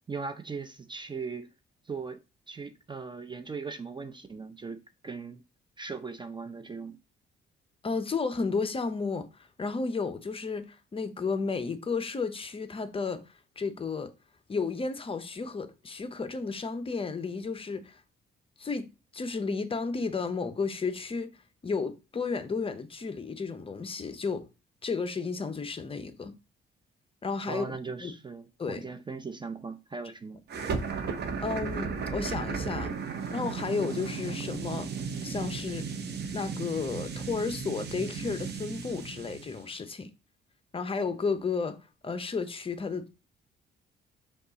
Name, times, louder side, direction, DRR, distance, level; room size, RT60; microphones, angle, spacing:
voice 1, 0.1-1.5 1.8-2.2 2.5-5.4 5.8-7.0 27.5-30.4, right 4 dB, 25° right, 0.5 m, -39 dB
voice 2, 7.8-13.2 13.6-14.1 14.5-18.0 18.6-18.9 19.1-21.3 21.6-24.5 24.8-26.3 27.2-28.1 28.6-28.9 31.4-32.9 33.3-34.9 35.2-35.9 36.3-40.1 40.7-41.8 42.0-43.1, left 4 dB, 30° left, 0.6 m, -32 dB
sound 1, 30.5-39.6, right 5 dB, 55° right, 0.8 m, -35 dB
5.2 x 2.4 x 3.9 m
cardioid pair, 90°, 20 cm